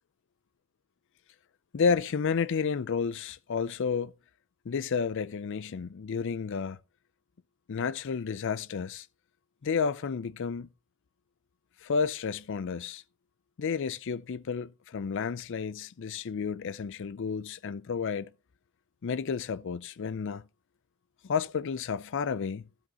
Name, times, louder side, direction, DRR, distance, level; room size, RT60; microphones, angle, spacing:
voice 1, 1.7-4.1 4.7-6.8 7.7-9.1 9.6-10.7 11.8-13.0 13.6-18.3 19.0-20.4 21.2-22.6, left 5 dB, 55° left, 0.4 m, -31 dB
12.0 x 7.8 x 2.9 m
head